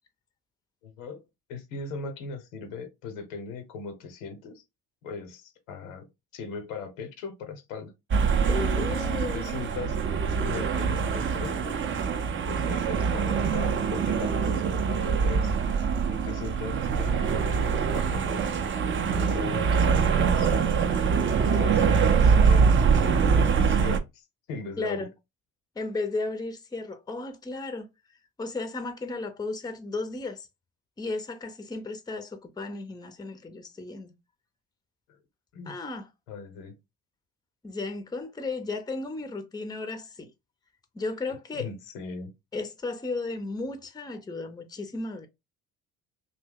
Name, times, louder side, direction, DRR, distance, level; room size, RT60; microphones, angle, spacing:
voice 1, 0.8-1.2 1.5-4.6 5.0-7.9 8.8-10.0 10.3-11.8 12.5-14.6 14.9-15.6 16.1-18.5 19.2-20.5 20.8-20.9 21.3-25.1 35.5-35.7 36.3-36.7 41.5-42.3, left 5 dB, 80° left, 0.8 m, -39 dB
sound 1, 8.1-24.0, right 6 dB, 30° right, 0.5 m, -24 dB
voice 2, 8.4-9.5 24.8-25.1 25.8-27.9 28.4-30.5 31.0-34.1 35.7-36.1 37.6-40.3 40.9-41.7 42.5-45.3, left 3 dB, 10° left, 0.6 m, -34 dB
2.7 x 2.1 x 3.6 m
hypercardioid pair, 55°, 39 cm